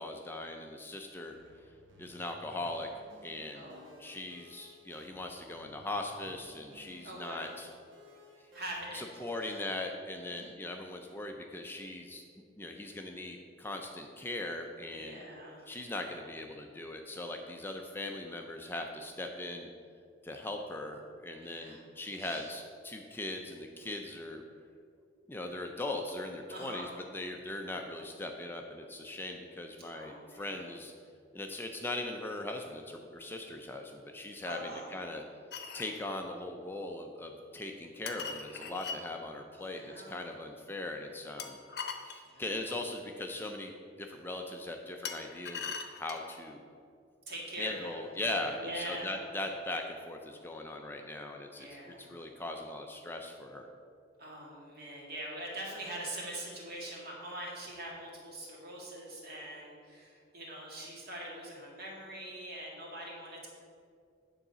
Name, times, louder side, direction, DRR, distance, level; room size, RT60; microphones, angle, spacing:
voice 1, 0.0-1.7 2.0-2.9 3.2-3.7 4.0-7.7 8.4-8.5 8.9-12.2 12.6-15.2 15.7-19.7 20.2-24.4 25.3-30.9 31.3-35.2 35.7-41.6 42.0-46.6 47.6-53.7, left 2 dB, 10° left, 3 dB, 0.4 m, -40 dB
sound 1, 1.4-8.7, equal, 80° right, 1.0 m, -58 dB
voice 2, 3.5-4.1 7.0-7.5 8.5-9.5 10.3-10.4 14.9-15.7 21.4-21.8 22.2-22.5 26.5-26.9 29.8-30.7 34.4-34.9 39.5-40.2 42.2-42.5 47.3-49.1 51.5-52.2 54.2-63.5, right 1 dB, 55° right, -3 dB, 2.0 m, -43 dB
sound 2, 35.5-36.0 38.1-39.0 41.4-42.8 45.0-46.4, left 6 dB, 55° left, 0.7 m, -41 dB
8.7 x 3.9 x 6.7 m, 2.3 s
head